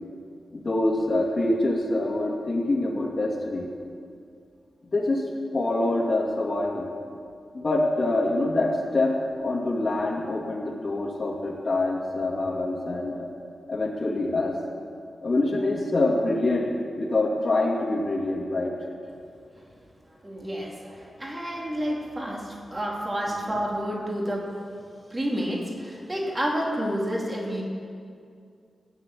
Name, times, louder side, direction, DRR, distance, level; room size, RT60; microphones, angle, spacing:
voice 1, 0.5-3.7 4.9-5.2 5.5-6.9 7.5-9.2 9.4-13.3 13.7-14.5 15.2-16.7 17.0-18.7, left 2 dB, 40° left, -1 dB, 2.3 m, -25 dB
voice 2, 20.2-24.5 25.1-27.6, equal, 20° right, -2 dB, 2.6 m, -29 dB
17.0 x 9.7 x 7.4 m, 2.3 s
wide cardioid pair, 160°, 0 cm